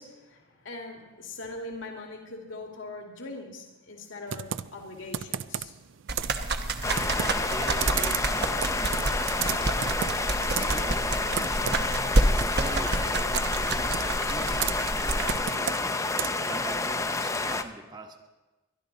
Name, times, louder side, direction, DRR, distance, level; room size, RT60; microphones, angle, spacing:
voice 1, 0.0-5.7, left 2 dB, 80° left, 1 dB, 2.4 m, -41 dB
Computer keyboard, 4.3-16.6, right 9 dB, 75° right, 0.4 m, -35 dB
sound 1, 6.1-15.4, right 2 dB, 55° right, 1.0 m, -29 dB
sound 2, 6.8-17.6, left 3 dB, 15° left, 0.6 m, -29 dB
voice 2, 7.0-10.0 10.5-11.9 12.3-15.9 16.4-18.2, right 1 dB, 20° right, 4 dB, 1.3 m, -42 dB
22.5 x 12.0 x 4.0 m, 1.1 s
head